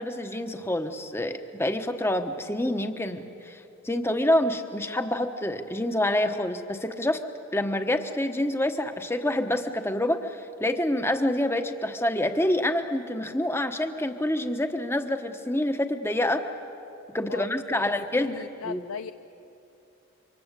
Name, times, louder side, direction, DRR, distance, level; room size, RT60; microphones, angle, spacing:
voice 1, 0.0-7.2 7.5-16.4 17.1-18.8, left 1 dB, 10° left, 7 dB, 1.1 m, -27 dB
voice 2, 17.3-19.1, left 6 dB, 70° left, 11 dB, 0.5 m, -39 dB
28.0 x 25.0 x 8.2 m, 2.8 s
head